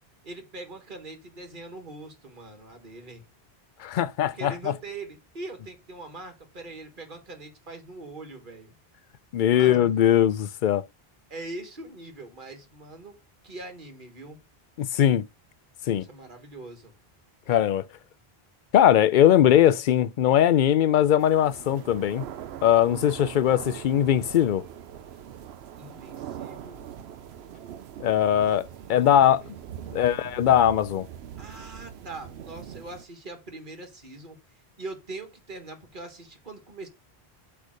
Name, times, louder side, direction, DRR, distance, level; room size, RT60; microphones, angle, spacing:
voice 1, 0.2-3.2 4.2-8.7 9.5-9.9 11.3-13.2 13.4-14.4 15.8-16.9 25.8-26.9 28.8-29.5 29.8-30.3 31.4-34.4 34.8-36.9, right 2 dB, 50° right, 1.8 m, -42 dB
voice 2, 3.8-4.7 9.3-10.8 14.8-15.2 15.9-16.0 17.5-17.8 18.7-22.3 22.6-24.6 28.0-29.4 29.9-31.1, left 10 dB, 60° left, 0.6 m, -20 dB
sound 1, 21.2-33.1, right 10 dB, 85° right, 0.9 m, -42 dB
8.2 x 3.4 x 6.4 m
omnidirectional pair, 1.1 m